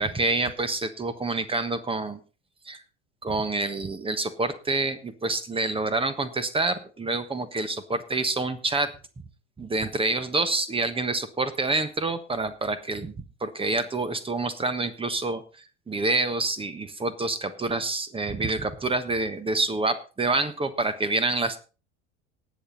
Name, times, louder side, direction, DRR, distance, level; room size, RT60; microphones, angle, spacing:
voice 1, 0.0-2.2 2.7-2.8 3.2-8.9 9.6-13.1 13.4-15.4 15.9-21.6, right 3 dB, 15° right, 13 dB, 1.3 m, -27 dB
18.5 x 7.4 x 4.1 m, 0.34 s
figure-of-eight pair, 75°, 35 cm